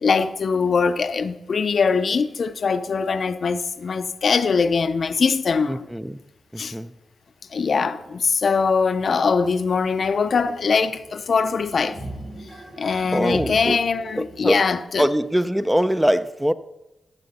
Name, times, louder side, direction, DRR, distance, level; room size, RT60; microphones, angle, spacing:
voice 1, 0.0-5.8 6.6-6.7 7.5-12.0 12.8-15.1, left 5 dB, 60° left, 0.5 m, -22 dB
voice 2, 5.7-6.2 6.5-6.9 13.1-13.8 14.2-14.6 15.0-16.5, equal, 5° right, 0.5 m, -22 dB
sound 1, 8.3-8.4 8.5-14.6, right 1 dB, 65° right, 4.3 m, -40 dB
15.0 x 6.8 x 4.1 m
cardioid pair, 65°, 0 cm